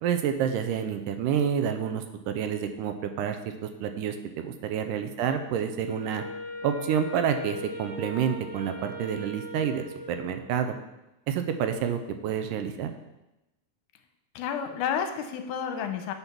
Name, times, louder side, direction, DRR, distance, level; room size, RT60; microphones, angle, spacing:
voice 1, 0.0-3.4 3.6-6.2 6.6-10.8 11.3-12.9, right 8 dB, 80° right, 7 dB, 2.2 m, -29 dB
Wind instrument woodwind instrument, 5.9-10.5, left 1 dB, 45° right, 0.9 m, -39 dB
voice 2, 14.3-16.1, left 8 dB, 75° left, 7 dB, 2.1 m, -31 dB
8.0 x 5.5 x 6.0 m, 0.96 s
omnidirectional pair, 3.9 m